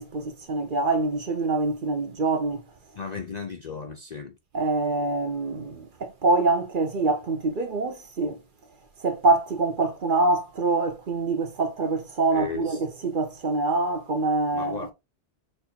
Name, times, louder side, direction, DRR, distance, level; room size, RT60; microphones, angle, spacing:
voice 1, 0.0-2.7 4.5-8.4 9.0-14.8, right 3 dB, 50° right, 0.9 m, -25 dB
voice 2, 3.0-4.4 12.3-12.8 14.5-14.9, left 5 dB, 50° left, 0.5 m, -35 dB
6.3 x 2.7 x 2.8 m
omnidirectional pair, 1.2 m